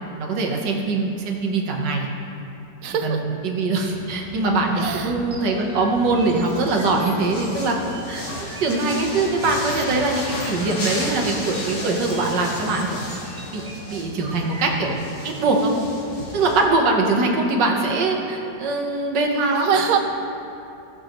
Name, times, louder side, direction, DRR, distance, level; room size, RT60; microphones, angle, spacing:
voice 1, 0.2-2.1 3.0-13.0 13.5-14.9 15.2-15.7 16.3-20.0, right 3 dB, 85° right, 1 dB, 1.7 m, -22 dB
voice 2, 2.8-3.2 4.8-5.1 19.6-20.0, right 7 dB, 65° right, 5 dB, 0.9 m, -23 dB
sound 1, 3.9-16.6, left 1 dB, 90° left, 2.4 m, -34 dB
sound 2, 5.3-14.9, right 2 dB, 45° right, 0.5 m, -42 dB
16.5 x 6.5 x 3.0 m, 2.8 s
omnidirectional pair, 1.8 m